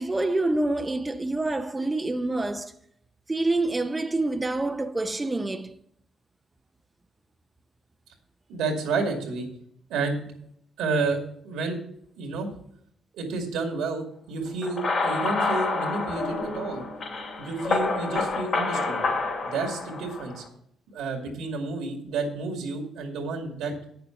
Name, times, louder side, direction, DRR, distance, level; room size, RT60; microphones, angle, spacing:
voice 1, 0.0-2.7 3.3-5.8, right 2 dB, 15° right, 0.6 m, -27 dB
voice 2, 8.5-9.5 9.9-10.2 10.8-11.8 12.2-12.5 13.1-16.8 17.4-19.0 19.4-20.4 20.9-23.7, right 3 dB, 90° right, 2.2 m, -30 dB
sound 1, 14.6-20.4, left 3 dB, 60° left, 2.9 m, -28 dB
8.9 x 6.9 x 5.8 m
cardioid pair, 90°, 0 cm